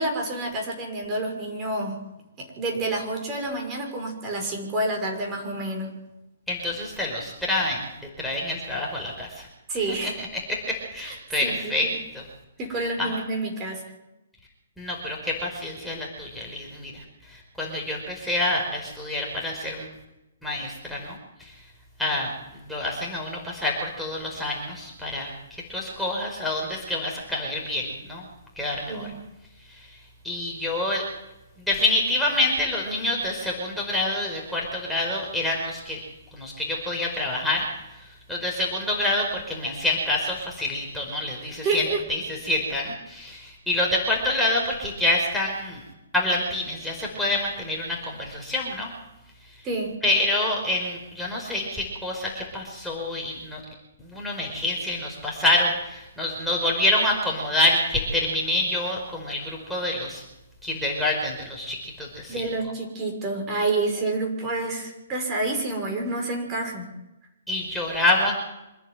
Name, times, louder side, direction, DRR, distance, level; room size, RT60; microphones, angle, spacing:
voice 1, 0.0-2.0 2.4-5.9 9.7-10.2 11.0-11.2 11.4-11.9 12.6-13.8 28.9-29.2 41.6-42.0 49.6-50.0 62.3-66.9, right 2 dB, 25° right, 1 dB, 5.8 m, -28 dB
voice 2, 6.5-7.9 8.2-9.5 10.2-10.3 10.7-11.9 12.1-12.2 13.0-13.1 14.8-16.9 17.6-19.9 20.4-21.2 22.0-22.3 22.7-25.3 25.7-28.2 28.6-29.1 30.2-31.0 31.7-36.0 36.3-37.6 38.3-41.8 42.1-45.8 46.1-48.9 50.0-53.6 54.0-60.2 60.6-62.4 67.5-68.3, left 1 dB, ahead, -3 dB, 5.2 m, -27 dB
26.0 x 11.0 x 9.4 m, 0.93 s
hypercardioid pair, 140°, 0 cm